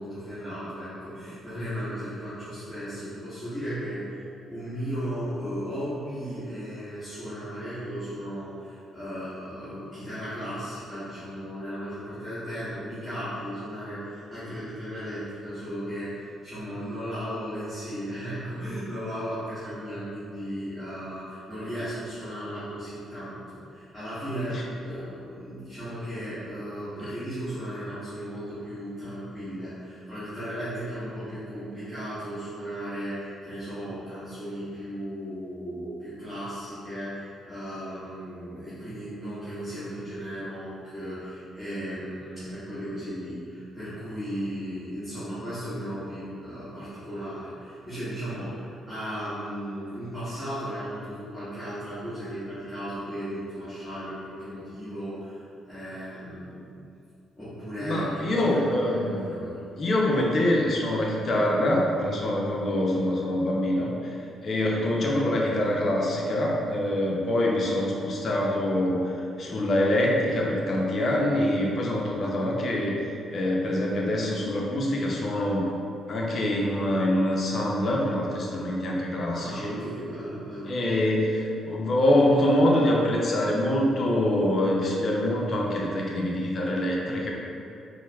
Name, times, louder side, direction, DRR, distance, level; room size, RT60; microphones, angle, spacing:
voice 1, 0.0-56.6 57.4-59.6 79.3-80.7, equal, 10° left, -16 dB, 1.2 m, -36 dB
voice 2, 57.8-59.3 59.8-64.2 64.4-75.6 76.1-79.8 80.7-87.3, left 1 dB, 50° left, -2 dB, 0.5 m, -25 dB
4.4 x 2.1 x 2.2 m, 2.5 s
cardioid pair, 95°, 0 cm